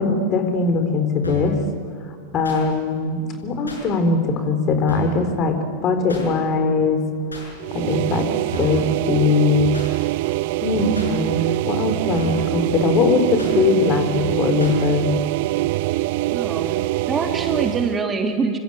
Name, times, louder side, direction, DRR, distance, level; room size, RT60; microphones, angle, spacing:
voice 1, 0.0-1.6 2.3-5.6 5.8-7.0 7.7-8.3 8.6-9.7 10.6-15.1, left 4 dB, 35° left, 7 dB, 4.0 m, -20 dB
sound 1, 1.2-1.6 2.4-2.6 3.7-3.8 4.9-5.2 6.1-6.3 7.3-7.5 8.5-8.9 9.7-9.9 10.9-11.1 12.2-12.5 13.4-13.6 14.6-14.8, equal, 80° left, 7.1 m, -33 dB
sound 2, 7.6-18.0, right 18 dB, 50° right, 0.6 m, -24 dB
voice 2, 16.3-18.6, right 4 dB, 20° right, 4 dB, 3.2 m, -25 dB
28.0 x 25.0 x 8.5 m, 2.1 s
figure-of-eight pair, 90°, 0 cm